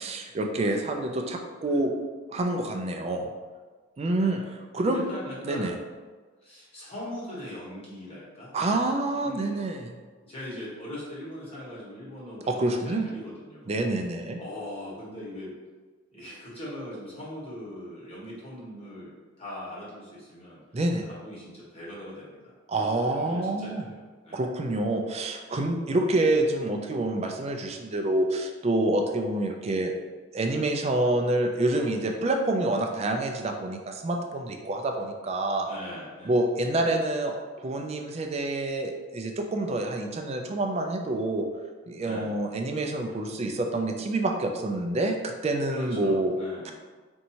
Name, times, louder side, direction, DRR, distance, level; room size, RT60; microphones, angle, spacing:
voice 1, 0.0-1.9 2.3-3.3 4.0-4.4 4.7-5.0 5.4-5.7 8.5-9.9 12.5-13.1 13.7-14.4 20.7-21.1 22.7-23.9 24.3-29.9 30.3-35.7 36.3-41.5 41.9-46.4 46.6-46.7, right 2 dB, 30° right, 4 dB, 0.4 m, -27 dB
voice 2, 0.6-1.8 2.6-3.1 4.1-5.7 6.4-8.5 9.1-9.9 10.2-13.7 14.4-15.5 16.1-19.1 19.4-20.6 21.1-24.0 24.2-24.4 26.8-27.1 35.6-36.3 36.6-36.8 39.6-39.9 41.9-42.3 45.7-46.7, left 1 dB, 30° left, -7 dB, 1.3 m, -41 dB
4.4 x 2.7 x 2.9 m, 1.4 s
head